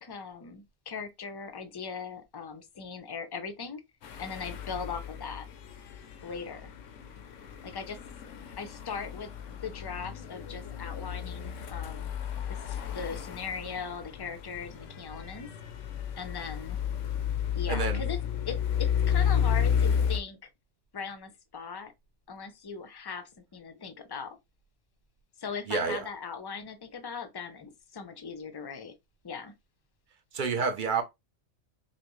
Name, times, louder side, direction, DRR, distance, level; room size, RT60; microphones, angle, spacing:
voice 1, 0.0-3.8 4.2-5.5 6.2-6.7 7.6-8.0 8.6-12.1 12.5-15.5 16.2-16.8 17.5-20.5 20.9-21.9 22.3-24.4 25.4-28.9 29.2-29.5, left 5 dB, 35° left, 0.3 m, -39 dB
sound 1, 4.0-20.2, left 8 dB, 85° left, 1.0 m, -32 dB
voice 2, 17.7-18.0 25.7-26.0 30.3-31.0, right 5 dB, 55° right, 0.7 m, -29 dB
5.6 x 2.0 x 3.0 m
omnidirectional pair, 1.2 m